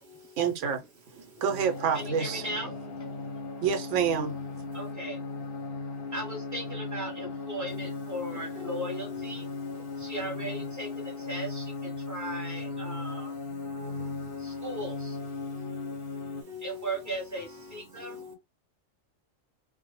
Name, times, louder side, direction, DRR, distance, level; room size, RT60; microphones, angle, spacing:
voice 1, 0.4-0.8 1.1-2.5 3.6-4.4, right 7 dB, 75° right, 0.9 m, -28 dB
sound 1, 1.5-16.4, left 3 dB, 55° left, 0.7 m, -37 dB
voice 2, 1.9-3.6 4.7-5.2 6.1-13.4 14.4-15.2 16.0-16.1 16.6-18.2, right 1 dB, 15° right, 0.8 m, -38 dB
voice 3, 16.5-16.9 18.1-18.3, left 7 dB, 50° right, 0.7 m, -42 dB
2.0 x 2.0 x 2.9 m
omnidirectional pair, 1.3 m